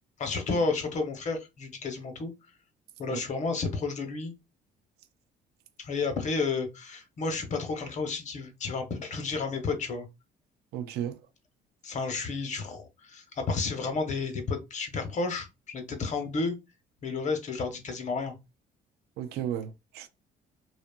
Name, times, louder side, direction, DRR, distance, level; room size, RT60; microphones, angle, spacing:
voice 1, 0.2-2.3 3.0-4.3 5.8-10.0 11.8-16.6 17.0-18.3, left 4 dB, 45° left, 0.9 m, -31 dB
voice 2, 10.7-11.2 19.2-20.1, right 10 dB, 75° right, 0.4 m, -34 dB
2.8 x 2.3 x 2.3 m
cardioid pair, 110°, 17 cm